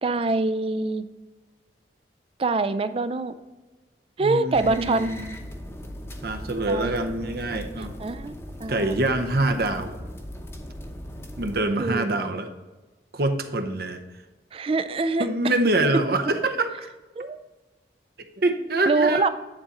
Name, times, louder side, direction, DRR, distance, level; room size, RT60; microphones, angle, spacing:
voice 1, 0.0-1.0 2.4-3.3 4.2-5.1 6.7-6.9 7.8-8.9 11.8-12.3 14.5-15.6 17.2-17.4 18.9-19.3, right 3 dB, 30° right, 12 dB, 0.4 m, -25 dB
voice 2, 4.2-5.3 6.2-7.9 8.7-10.0 11.4-12.5 13.1-14.0 15.2-16.9 18.4-19.2, right 2 dB, 60° right, 7 dB, 0.7 m, -25 dB
sound 1, 4.5-11.6, equal, 15° left, 0.8 m, -39 dB
9.8 x 4.2 x 3.7 m, 1.2 s
head